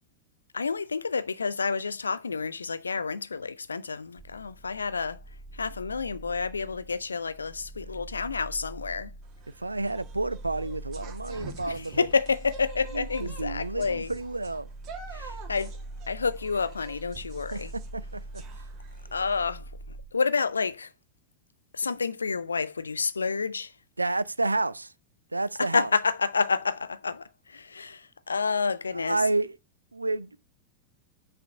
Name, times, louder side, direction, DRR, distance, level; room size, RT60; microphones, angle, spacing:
voice 1, 0.5-5.2 5.5-9.1 11.7-14.1 15.1-15.7 16.1-17.7 19.1-19.7 20.1-20.9 21.7-23.7 25.6-29.2, left 5 dB, 75° left, 0.4 m, -29 dB
sound 1, 4.2-20.1, right 2 dB, 5° right, 2.1 m, -43 dB
sound 2, 9.2-19.4, right 4 dB, 35° right, 2.3 m, -48 dB
voice 2, 9.6-12.1 12.9-14.7 17.5-18.4 24.0-24.9 25.3-25.9 28.9-29.6 29.9-30.4, right 2 dB, 80° right, 0.4 m, -30 dB
6.0 x 4.8 x 6.1 m
figure-of-eight pair, 90°, 0 cm